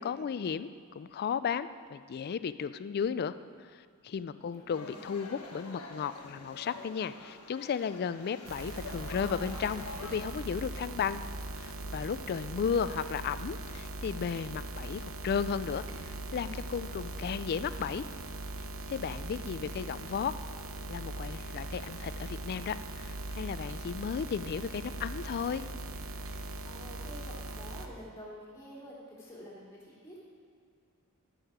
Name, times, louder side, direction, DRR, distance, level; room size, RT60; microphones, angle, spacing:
voice 1, 0.0-11.2 11.6-18.0 18.9-20.3 20.9-25.7, left 7 dB, 45° left, 14 dB, 0.3 m, -34 dB
sound 1, 4.7-10.2, left 3 dB, 80° left, 1.2 m, -46 dB
sound 2, 8.4-27.9, right 2 dB, 65° right, 0.8 m, -40 dB
voice 2, 12.5-13.1 26.6-30.3, equal, 15° left, -6 dB, 3.2 m, -49 dB
14.0 x 6.4 x 5.0 m, 2.2 s
head